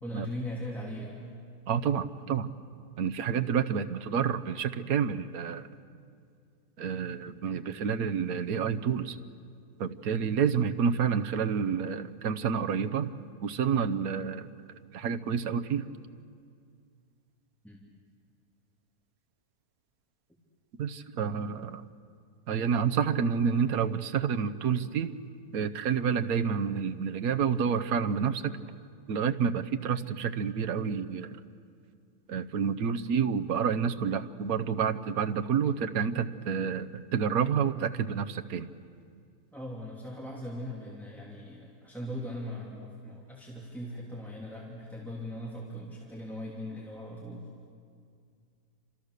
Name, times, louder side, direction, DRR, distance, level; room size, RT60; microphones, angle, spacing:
voice 1, 0.0-1.2 17.6-17.8 39.5-47.5, equal, ahead, -4 dB, 3.0 m, -39 dB
voice 2, 1.7-2.5 3.0-5.6 6.8-9.2 9.8-13.1 13.4-14.5 14.9-15.9 20.8-21.8 22.5-25.1 25.5-28.6 29.1-31.4 32.3-38.7, right 7 dB, 70° right, 8 dB, 1.3 m, -29 dB
30.0 x 26.5 x 6.7 m, 2.3 s
omnidirectional pair, 1.6 m